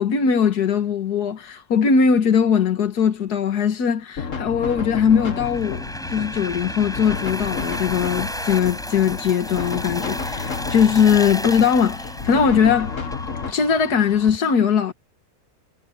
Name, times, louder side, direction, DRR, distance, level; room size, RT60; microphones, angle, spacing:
voice 1, 0.0-13.0 13.5-14.9, left 7 dB, 80° left, 2.0 m, -20 dB
sound 1, 4.2-13.5, left 5 dB, 55° left, 2.0 m, -31 dB
sound 2, 4.6-14.4, equal, ahead, 5.5 m, -33 dB
omnidirectional pair, 1.7 m